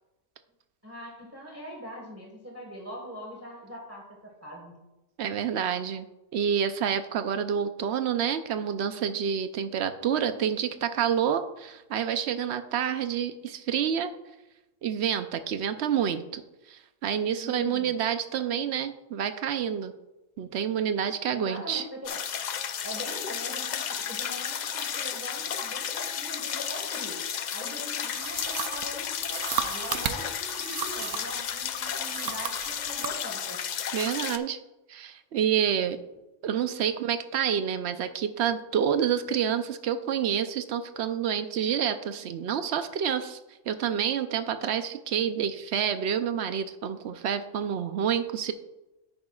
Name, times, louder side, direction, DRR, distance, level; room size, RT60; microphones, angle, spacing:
voice 1, 0.8-4.7 17.4-18.0 21.3-22.2 22.8-27.2 27.5-33.6, equal, 10° right, -1 dB, 1.4 m, -42 dB
voice 2, 5.2-6.1 6.3-14.1 14.8-16.4 16.7-19.9 20.4-21.8 33.9-34.6 34.9-36.0 36.4-43.4 43.7-48.5, right 8 dB, 65° right, 10 dB, 0.9 m, -28 dB
sound 1, 22.0-34.4, left 8 dB, 65° left, 0.4 m, -33 dB
sound 2, 28.1-31.4 31.9-33.2, right 9 dB, 85° right, 1.0 m, -35 dB
10.5 x 8.9 x 2.4 m, 1.0 s
omnidirectional pair, 1.3 m